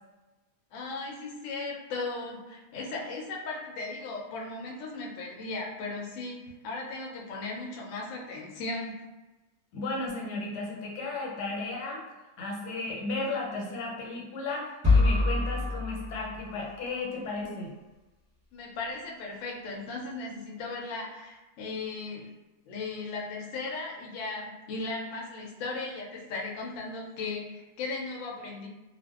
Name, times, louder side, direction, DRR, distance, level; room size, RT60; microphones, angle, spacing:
voice 1, 0.7-9.0 18.5-22.3 22.7-28.7, left 3 dB, 65° left, -2 dB, 0.7 m, -37 dB
voice 2, 9.7-12.0 12.4-17.7, left 3 dB, 90° left, -2 dB, 1.2 m, -34 dB
sound 1, 14.8-16.9, left 3 dB, 15° right, 0.7 m, -25 dB
2.5 x 2.1 x 2.3 m, 1.1 s
omnidirectional pair, 1.7 m